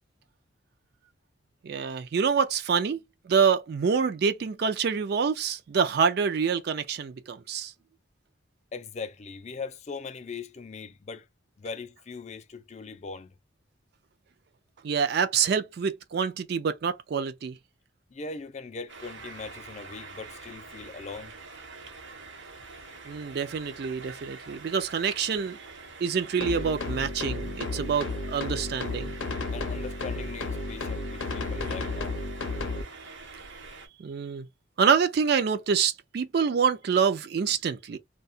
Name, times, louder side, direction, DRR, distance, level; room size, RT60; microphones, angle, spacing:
voice 1, 1.6-3.0 3.3-7.7 14.8-17.6 23.1-25.6 26.0-29.2 34.0-34.5 34.8-38.0, right 6 dB, 55° right, 0.3 m, -26 dB
voice 2, 8.7-11.3 11.6-13.3 18.1-21.3 29.5-32.2, left 4 dB, 35° left, 0.4 m, -40 dB
sound 1, 18.9-33.9, right 4 dB, 75° right, 0.9 m, -46 dB
sound 2, 26.4-32.8, left 3 dB, 80° left, 0.6 m, -33 dB
2.7 x 2.2 x 2.6 m
head